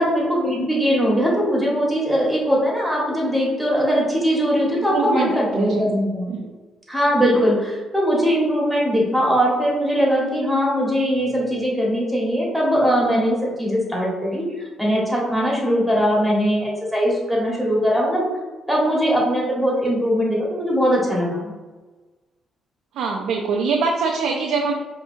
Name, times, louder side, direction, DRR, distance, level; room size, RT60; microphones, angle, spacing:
voice 1, 0.0-6.3 6.9-18.3 18.7-21.5, equal, ahead, -4 dB, 1.4 m, -20 dB
voice 2, 4.8-5.8 6.3-6.5 22.9-24.7, right 4 dB, 85° right, 0 dB, 0.4 m, -24 dB
4.8 x 2.7 x 2.6 m, 1.2 s
cardioid pair, 90°, 0 cm